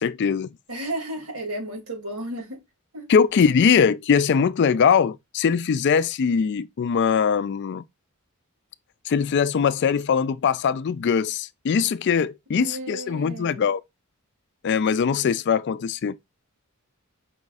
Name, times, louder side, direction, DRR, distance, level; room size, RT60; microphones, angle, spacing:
voice 1, 0.0-0.5 3.1-7.8 9.1-13.8 14.6-16.2, left 6 dB, 55° left, 0.3 m, -21 dB
voice 2, 0.7-2.6 2.9-3.0 12.5-13.6, right 1 dB, 85° right, 2.7 m, -33 dB
5.6 x 2.4 x 4.0 m
head